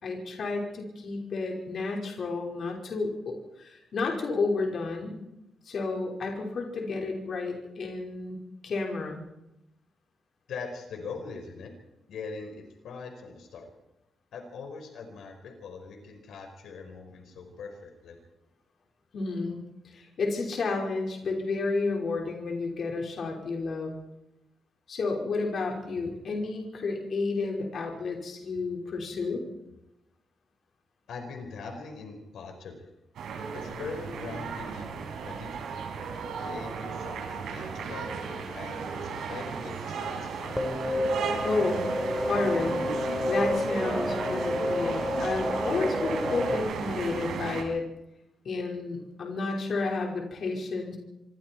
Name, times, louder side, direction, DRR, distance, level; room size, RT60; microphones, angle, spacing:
voice 1, 0.0-5.2 5.7-8.4 8.6-9.2 19.1-19.6 19.8-24.0 24.9-29.4 41.4-41.8 42.3-42.8 43.3-47.9 48.5-51.0, left 3 dB, 45° left, 0 dB, 5.3 m, -31 dB
voice 2, 10.5-11.7 12.1-13.7 14.3-18.2 31.1-32.9 33.5-35.9 36.4-40.7, left 4 dB, 75° left, 4 dB, 4.7 m, -42 dB
sound 1, 33.1-47.6, right 5 dB, 85° right, 6.3 m, -35 dB
sound 2, 40.5-46.6, left 1 dB, 10° left, 4.1 m, -30 dB
27.0 x 24.5 x 4.7 m, 0.91 s
wide cardioid pair, 170°, 0 cm